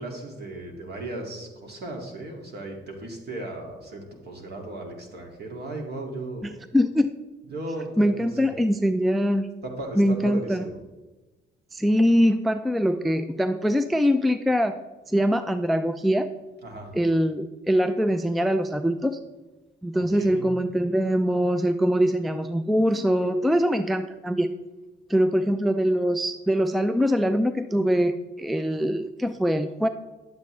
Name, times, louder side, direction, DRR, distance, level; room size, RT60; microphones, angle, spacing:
voice 1, 0.0-6.5 7.5-8.5 9.6-10.8 16.6-16.9 19.9-20.5, right 2 dB, 55° right, 1 dB, 2.3 m, -36 dB
voice 2, 6.7-7.1 8.0-9.5 10.0-10.6 11.7-14.8 15.1-16.3 16.9-19.2 19.8-24.5 25.1-29.9, equal, ahead, 10 dB, 0.4 m, -23 dB
10.5 x 8.1 x 3.2 m, 1.2 s
cardioid pair, 90°, 20 cm